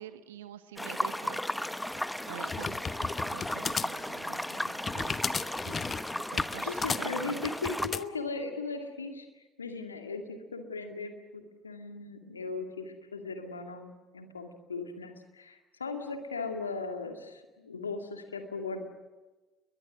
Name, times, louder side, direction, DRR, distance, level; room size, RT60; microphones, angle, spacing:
voice 1, 0.0-6.0 6.3-7.5, right 11 dB, 75° right, 12 dB, 1.0 m, -48 dB
sound 1, 0.8-7.9, left 1 dB, 5° left, 1.1 m, -35 dB
sound 2, 1.9-8.0, left 5 dB, 30° left, 1.0 m, -35 dB
voice 2, 6.7-18.8, left 4 dB, 85° left, 6 dB, 2.2 m, -38 dB
30.0 x 22.5 x 6.2 m, 1.2 s
figure-of-eight pair, 55°, 0 cm